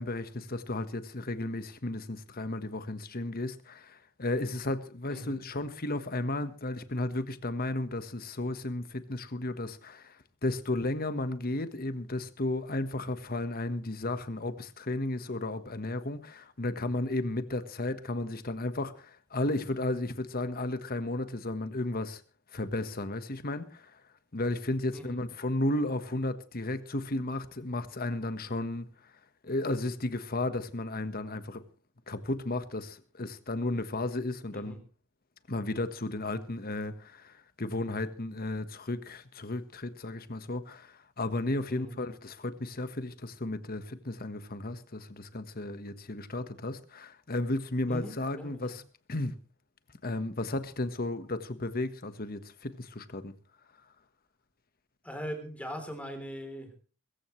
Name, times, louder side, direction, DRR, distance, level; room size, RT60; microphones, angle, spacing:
voice 1, 0.0-22.2 22.5-24.0 24.3-29.1 29.4-31.6 32.1-34.8 35.5-48.8 49.1-49.4 50.0-53.3, left 2 dB, 40° left, 1.4 m, -34 dB
voice 2, 47.9-48.8 55.0-56.8, equal, 5° left, 3.4 m, -41 dB
22.0 x 14.5 x 3.2 m
head